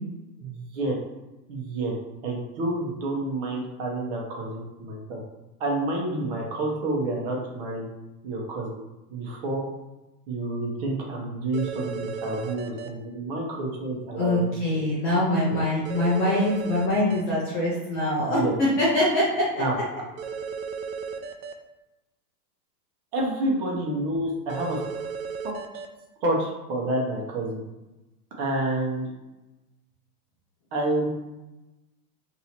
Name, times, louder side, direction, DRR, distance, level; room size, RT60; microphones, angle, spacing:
voice 1, 0.4-1.0 1.5-1.9 2.2-5.2 5.6-7.8 8.2-8.8 9.1-9.7 10.3-14.4 14.7-14.8 15.5-15.6 18.3-18.6 19.6-19.8 23.1-24.8 26.2-27.6 28.4-29.1 30.7-31.1, right 2 dB, 35° right, -2 dB, 0.9 m, -29 dB
sound 1, 11.5-12.9 15.9-17.2 20.2-21.5 24.5-25.9, right 6 dB, 60° right, 0.6 m, -34 dB
voice 2, 14.2-19.6, left 1 dB, 20° left, -7 dB, 0.5 m, -24 dB
2.8 x 2.7 x 4.3 m, 1.0 s
supercardioid pair, 160°, 49 cm